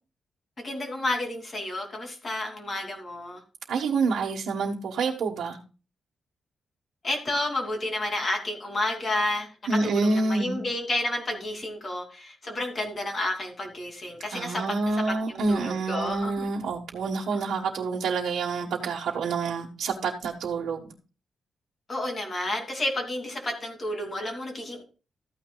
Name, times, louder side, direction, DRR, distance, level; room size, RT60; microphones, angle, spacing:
voice 1, 0.6-3.4 7.0-16.4 17.3-17.4 21.9-24.8, left 1 dB, 30° left, 3 dB, 2.8 m, -31 dB
voice 2, 3.7-5.6 9.7-10.6 14.3-20.9, right 4 dB, 75° right, -2 dB, 1.3 m, -27 dB
14.0 x 9.3 x 2.4 m, 0.33 s
wide cardioid pair, 150°, 0 cm